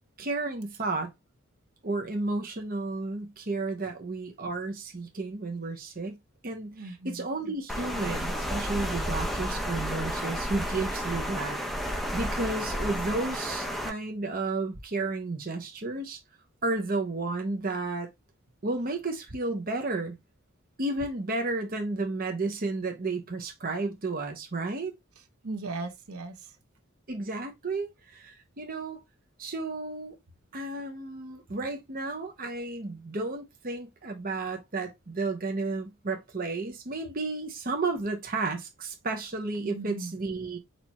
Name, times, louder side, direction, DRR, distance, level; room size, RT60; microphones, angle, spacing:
voice 1, 0.2-1.1 1.8-6.2 6.4-16.2 16.6-18.1 18.6-20.2 20.8-24.9 27.1-29.0 29.4-30.2 30.5-40.6, right 3 dB, 40° right, 0.9 m, -32 dB
voice 2, 6.7-7.2 25.4-26.5 39.6-40.1, right 3 dB, 80° right, 1.0 m, -37 dB
Water, 7.7-13.9, equal, ahead, 0.8 m, -32 dB
4.6 x 2.7 x 4.3 m
head